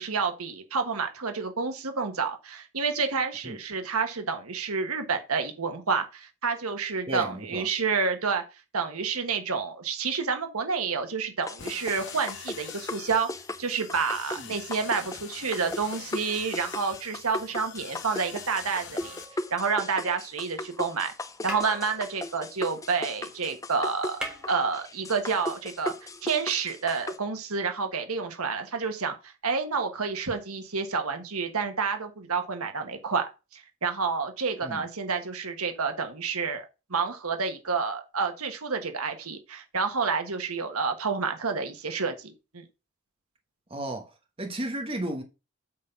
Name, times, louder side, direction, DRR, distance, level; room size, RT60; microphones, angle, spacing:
voice 1, 0.0-8.4 8.7-13.3 13.6-19.2 19.5-21.1 21.4-24.2 24.5-25.9 26.2-42.6, right 5 dB, 80° right, 1.4 m, -29 dB
voice 2, 7.1-7.7 14.3-14.5 34.6-34.8 43.7-44.1 44.4-45.2, right 1 dB, 25° right, 1.2 m, -33 dB
sound 1, 11.5-27.2, left 2 dB, 15° left, 0.5 m, -38 dB
sound 2, 11.6-19.2, left 8 dB, 55° left, 0.8 m, -44 dB
sound 3, 19.0-20.2 21.1-21.2 21.4-23.3 23.6-23.7 23.9-25.3 26.5-26.6, right 1 dB, 5° right, 1.6 m, -41 dB
8.3 x 4.1 x 5.7 m
head